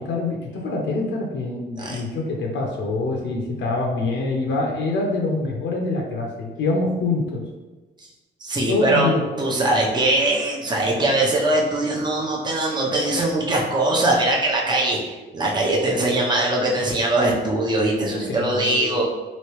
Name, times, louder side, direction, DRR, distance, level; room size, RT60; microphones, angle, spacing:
voice 1, 0.0-7.4 8.7-9.3 18.1-19.0, left 3 dB, 70° left, -1 dB, 0.7 m, -25 dB
voice 2, 8.4-9.1 9.4-19.0, right 2 dB, 20° right, -3 dB, 0.7 m, -21 dB
3.1 x 2.8 x 3.0 m, 1.2 s
cardioid pair, 90°, 20 cm